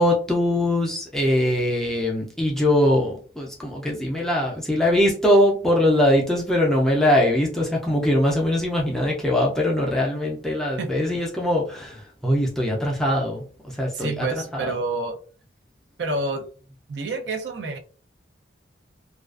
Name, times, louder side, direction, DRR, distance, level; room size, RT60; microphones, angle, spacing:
voice 1, 0.0-14.3 14.5-14.7, left 1 dB, 5° left, -2 dB, 0.4 m, -22 dB
voice 2, 13.9-15.2 16.0-16.5 16.9-17.8, right 3 dB, 70° right, 5 dB, 0.5 m, -28 dB
2.3 x 2.3 x 2.3 m, 0.39 s
head